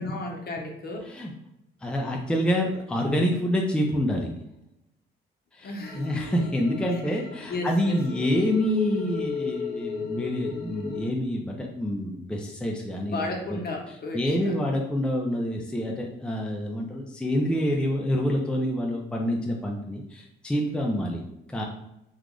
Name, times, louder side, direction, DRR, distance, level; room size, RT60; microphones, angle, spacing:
voice 1, 0.0-1.0 5.6-6.1 6.5-7.2 7.5-8.0 13.1-14.6, left 2 dB, 50° left, 1 dB, 0.9 m, -34 dB
voice 2, 1.8-4.3 5.5-13.6 14.1-21.2 21.5-21.6, equal, 5° left, 0 dB, 0.5 m, -27 dB
sound 1, 5.8-11.1, left 6 dB, 80° left, 0.6 m, -35 dB
3.0 x 2.5 x 3.7 m, 0.87 s
cardioid pair, 90°, 20 cm